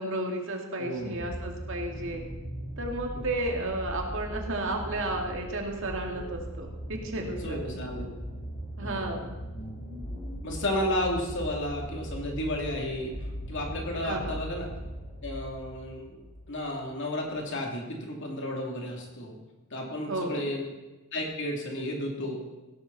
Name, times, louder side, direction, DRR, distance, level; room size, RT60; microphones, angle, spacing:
voice 1, 0.0-2.3 2.8-7.6 8.8-9.4 14.0-14.4 20.1-20.5, right 2 dB, 60° right, 1 dB, 2.2 m, -33 dB
voice 2, 0.8-1.2 7.1-8.1 8.8-9.2 9.6-9.7 10.4-13.1 13.5-14.7 15.2-16.2 16.5-19.4 19.7-20.6 21.1-22.4, left 1 dB, 55° left, 0 dB, 2.9 m, -33 dB
sound 1, 1.1-16.6 17.4-17.5, equal, 35° left, 3.1 m, -39 dB
16.5 x 12.5 x 4.1 m, 1.1 s
head